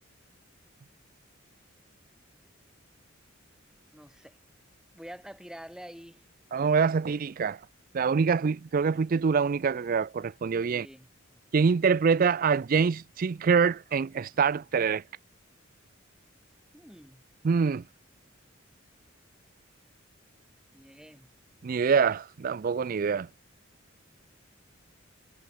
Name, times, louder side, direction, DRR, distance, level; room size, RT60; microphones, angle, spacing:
voice 1, 3.9-4.4 4.9-6.2 10.6-11.1 16.7-17.2 20.7-21.3, equal, 5° right, 3.4 m, -47 dB
voice 2, 6.5-7.6 7.9-10.9 11.5-15.0 17.4-17.8 21.6-23.3, right 5 dB, 45° right, 0.4 m, -25 dB
head